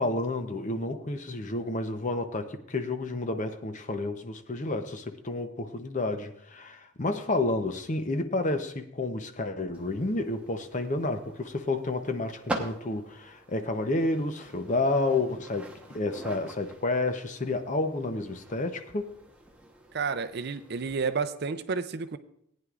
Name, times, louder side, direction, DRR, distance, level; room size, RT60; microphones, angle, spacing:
voice 1, 0.0-19.1, left 2 dB, 35° left, 8 dB, 0.7 m, -30 dB
sound 1, 9.7-21.2, right 2 dB, 5° right, 1.0 m, -44 dB
voice 2, 19.9-22.2, right 5 dB, 50° right, 10 dB, 0.5 m, -31 dB
18.5 x 9.4 x 2.4 m, 0.73 s
head